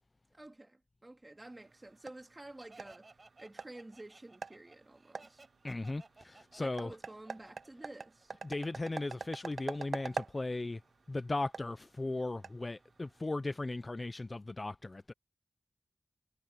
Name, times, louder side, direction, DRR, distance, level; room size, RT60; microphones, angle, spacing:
voice 1, 0.3-3.1 3.4-5.4 6.6-8.3, right 2 dB, 20° right, 2.8 m, -51 dB
sound 1, 1.4-13.2, right 5 dB, 70° right, 0.5 m, -46 dB
Laughter, 2.6-8.2, right 3 dB, 40° right, 4.8 m, -59 dB
voice 2, 5.6-6.9 8.4-10.8 11.1-15.1, left 2 dB, 30° left, 0.5 m, -37 dB
wide cardioid pair, 100°, 0 cm